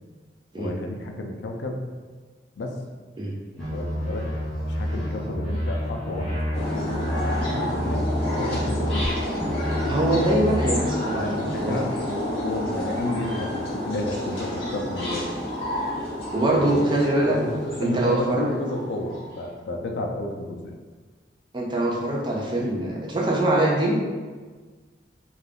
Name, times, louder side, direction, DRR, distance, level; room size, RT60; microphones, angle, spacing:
voice 1, 0.6-1.8 2.6-2.8 3.6-4.3 4.6-6.9 7.2-9.1 11.2-15.4 16.5-16.8 17.3-20.7, left 2 dB, 80° left, 3 dB, 0.4 m, -32 dB
sound 1, 3.6-9.1 9.4-10.8, equal, ahead, 0.7 m, -28 dB
sound 2, 6.5-19.4, left 1 dB, 30° left, 1.0 m, -30 dB
voice 2, 9.8-12.0 16.3-17.4 17.8-18.5 21.5-24.0, right 1 dB, 25° right, -2 dB, 0.4 m, -23 dB
2.4 x 2.3 x 3.3 m, 1.4 s
head